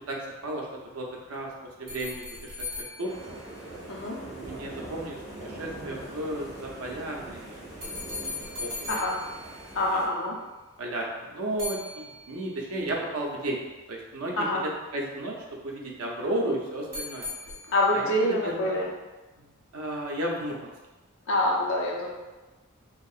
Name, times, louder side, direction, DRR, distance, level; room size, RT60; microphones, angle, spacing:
voice 1, 0.1-1.5 1.8-2.6 3.0-3.4 4.2-5.2 5.4-7.6 8.6-8.7 9.9-10.0 10.8-13.6 13.9-14.5 14.9-15.3 15.6-17.3 17.9-18.8 19.4-20.7, right 1 dB, 80° right, -1 dB, 0.6 m, -33 dB
sound 1, 1.9-4.3 7.8-10.3 11.6-12.8 16.9-18.1, left 3 dB, 55° right, 0.8 m, -39 dB
sound 2, 3.0-10.1, right 1 dB, 15° right, 0.9 m, -42 dB
voice 2, 9.7-10.3 14.4-14.6 17.7-18.8 21.3-22.1, left 1 dB, 60° left, -2 dB, 0.6 m, -25 dB
2.9 x 2.7 x 2.4 m, 1.2 s
head